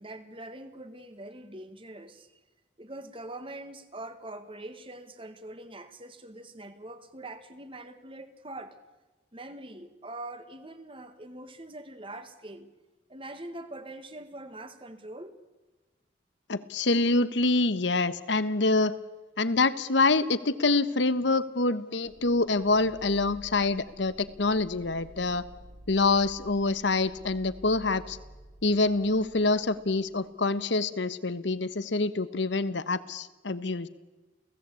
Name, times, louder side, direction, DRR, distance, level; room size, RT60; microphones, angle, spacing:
voice 1, 0.0-2.3 2.8-8.8 9.3-12.7 13.1-15.4, right 1 dB, 30° right, 10 dB, 1.8 m, -43 dB
voice 2, 16.5-18.9 19.4-25.4 25.9-28.2 28.6-33.9, left 3 dB, 65° left, 15 dB, 1.2 m, -26 dB
sound 1, 22.0-30.7, equal, 75° right, 3.9 m, -51 dB
29.5 x 17.5 x 8.5 m, 1.2 s
head